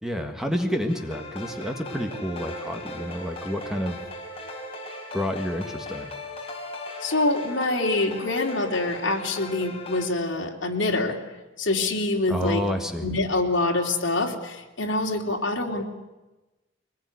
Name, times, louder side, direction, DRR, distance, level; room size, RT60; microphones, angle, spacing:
voice 1, 0.0-4.0 5.1-6.1 12.3-13.1, equal, 5° right, 4 dB, 1.7 m, -29 dB
sound 1, 0.9-10.1, left 1 dB, 30° left, 4.8 m, -38 dB
voice 2, 7.0-11.2 11.6-12.6 13.0-15.8, left 2 dB, 65° left, 1 dB, 3.2 m, -25 dB
23.0 x 20.0 x 9.6 m, 1.1 s
head